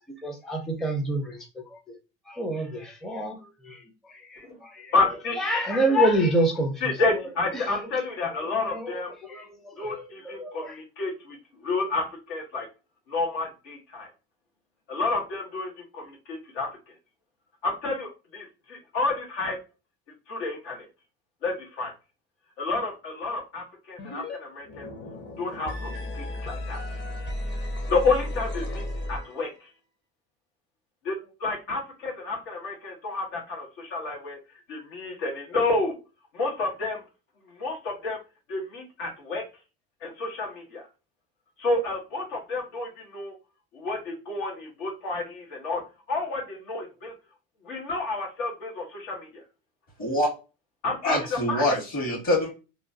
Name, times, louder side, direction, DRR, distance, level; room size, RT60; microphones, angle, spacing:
voice 1, 0.2-1.6 2.3-3.4 3.6-3.8 4.1-4.9 5.4-6.9 7.5-7.9 8.5-10.8, right 1 dB, ahead, 4 dB, 0.4 m, -28 dB
voice 2, 4.9-5.4 6.8-9.1 9.8-12.7 13.1-14.1 14.9-16.7 17.6-19.6 20.3-20.9 21.4-21.9 22.6-24.9 25.4-26.8 27.9-29.5 31.0-34.4 34.7-36.0 36.3-37.0 37.5-38.2 38.5-39.4 40.0-40.9 41.6-43.3 43.7-45.8 46.1-47.1 47.6-49.4 50.8-51.6, left 3 dB, 85° left, 0 dB, 1.2 m, -30 dB
sound 1, 24.0-24.4 24.6-29.6, left 1 dB, 30° left, 0.7 m, -34 dB
voice 3, 51.0-52.5, left 1 dB, 50° left, -2 dB, 1.6 m, -25 dB
2.9 x 2.2 x 2.6 m, 0.30 s
supercardioid pair, 95°, 35 cm